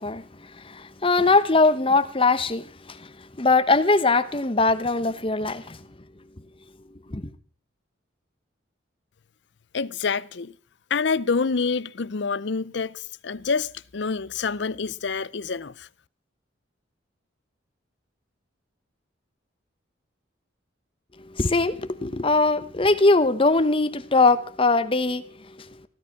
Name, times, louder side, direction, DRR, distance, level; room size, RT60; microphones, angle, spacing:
voice 1, 0.0-5.8 7.1-7.3 21.2-25.9, left 3 dB, 30° left, 1.0 m, -22 dB
voice 2, 9.7-10.5 10.9-15.9, left 5 dB, 60° left, 0.6 m, -27 dB
15.5 x 13.0 x 5.9 m
head